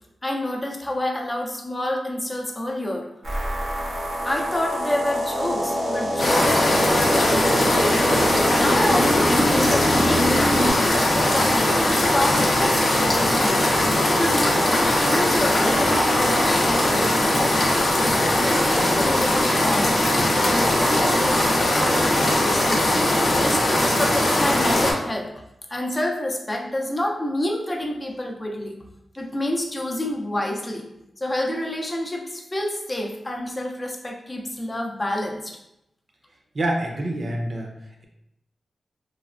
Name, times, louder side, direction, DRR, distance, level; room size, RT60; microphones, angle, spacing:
voice 1, 0.2-3.1 4.2-8.1 8.6-10.8 11.1-13.6 14.0-17.4 18.4-25.4 25.7-28.8 29.2-30.9 31.2-35.6, left 1 dB, 25° left, 0 dB, 0.5 m, -28 dB
sound 1, 3.2-10.7, equal, 90° right, 0.8 m, -25 dB
sound 2, 6.2-24.9, left 1 dB, 60° left, 0.7 m, -20 dB
voice 2, 36.5-37.7, right 1 dB, 50° right, 1 dB, 0.6 m, -27 dB
3.1 x 2.1 x 2.4 m, 0.85 s
cardioid pair, 65°, 0 cm